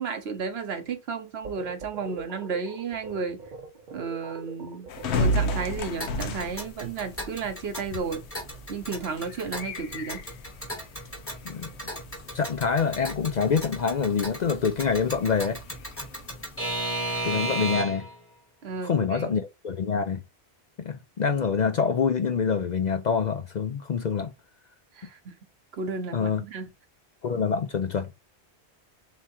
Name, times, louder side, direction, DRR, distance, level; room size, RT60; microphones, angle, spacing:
voice 1, 0.0-3.4 3.9-4.9 5.2-8.2 8.7-10.2 18.6-19.2 25.0-25.3 25.7-26.7, right 5 dB, 70° right, 1.1 m, -33 dB
sound 1, 1.4-5.9, right 3 dB, 50° right, 0.8 m, -43 dB
sound 2, 4.9-17.7, left 1 dB, 85° left, 1.0 m, -35 dB
Alarm / Clock, 6.0-18.2, right 1 dB, 15° left, 1.1 m, -35 dB
voice 2, 12.3-15.6 17.2-18.1 18.8-20.2 20.8-24.3 26.1-26.4 27.2-28.1, left 6 dB, 55° left, 0.5 m, -26 dB
3.6 x 2.9 x 4.2 m
omnidirectional pair, 1.1 m